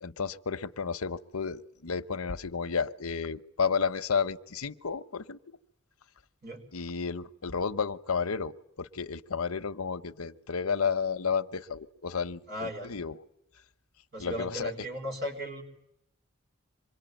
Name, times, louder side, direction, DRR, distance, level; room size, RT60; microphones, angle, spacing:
voice 1, 0.0-5.6 6.7-13.1 14.2-14.7, left 5 dB, 85° left, 12 dB, 0.9 m, -32 dB
voice 2, 12.5-12.9 14.1-15.6, equal, 45° right, 2 dB, 4.1 m, -36 dB
26.5 x 22.0 x 9.1 m, 0.80 s
head